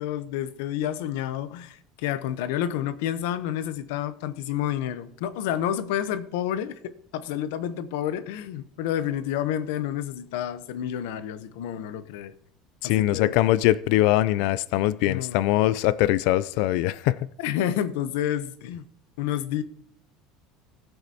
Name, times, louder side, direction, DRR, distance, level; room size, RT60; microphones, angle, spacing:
voice 1, 0.0-12.3 12.8-13.4 15.0-15.4 17.4-18.9 19.2-19.6, left 10 dB, 85° left, 0.8 m, -29 dB
voice 2, 12.8-17.1, left 15 dB, 65° left, 0.3 m, -22 dB
19.0 x 7.9 x 2.8 m
cardioid pair, 170°, 0 cm